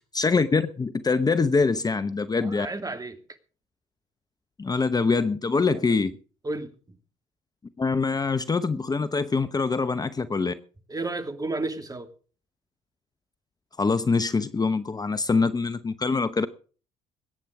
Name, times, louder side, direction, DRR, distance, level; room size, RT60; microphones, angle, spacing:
voice 1, 0.1-2.7 4.6-6.1 7.8-10.5 13.8-16.5, left 4 dB, 25° left, 12 dB, 0.9 m, -24 dB
voice 2, 2.4-3.2 5.7-5.8 6.4-6.7 10.9-12.1, right 2 dB, 20° right, 7 dB, 2.7 m, -32 dB
21.5 x 9.3 x 4.9 m, 0.40 s
hypercardioid pair, 55°, 16 cm